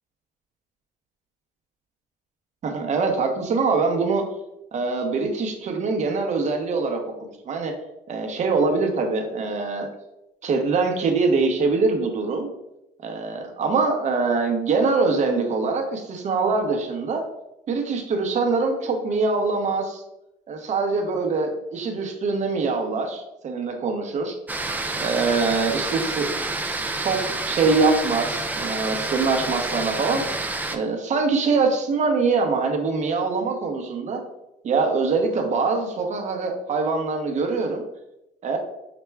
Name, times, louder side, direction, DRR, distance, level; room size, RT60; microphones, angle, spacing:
voice 1, 2.6-4.2 4.7-7.0 7.4-7.7 8.1-9.9 10.4-12.5 13.0-17.2 17.7-20.0 20.5-24.3 25.0-26.3 26.6-34.2 34.6-37.8 38.4-38.6, right 4 dB, 45° right, 3 dB, 0.8 m, -23 dB
sound 1, 24.5-30.8, right 2 dB, 10° right, 0.4 m, -28 dB
5.9 x 2.1 x 3.3 m, 0.89 s
cardioid pair, 110°, 17 cm